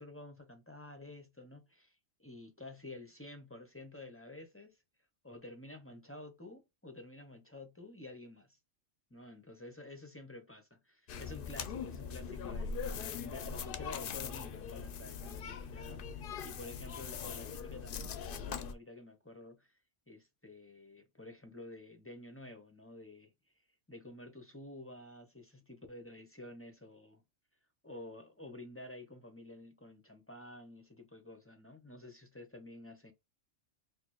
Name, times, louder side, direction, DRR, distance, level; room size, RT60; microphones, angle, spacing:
voice 1, 0.0-4.8 5.2-8.6 9.1-19.8 20.1-23.3 23.9-27.2 27.8-33.1, left 2 dB, 15° left, 0.4 m, -50 dB
sound 1, 11.1-18.7, left 6 dB, 60° left, 0.6 m, -41 dB
4.1 x 2.5 x 3.1 m
omnidirectional pair, 1.3 m